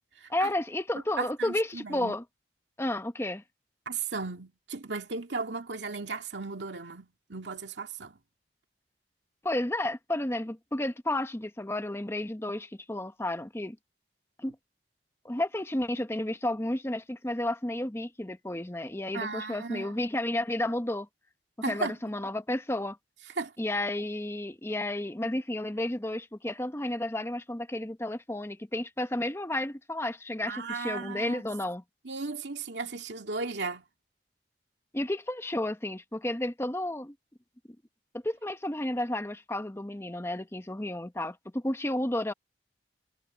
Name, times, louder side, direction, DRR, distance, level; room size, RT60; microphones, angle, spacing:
voice 1, 0.3-2.2 2.8-3.4 9.4-13.8 14.4-14.6 15.2-21.1 21.7-23.0 23.6-31.8 34.9-37.1 38.1-42.3, left 1 dB, 15° left, 0.9 m, -32 dB
voice 2, 1.2-2.1 3.9-8.1 19.1-20.0 21.6-22.0 23.4-23.5 30.5-31.4 32.0-33.8, right 4 dB, 80° right, 2.2 m, -35 dB
head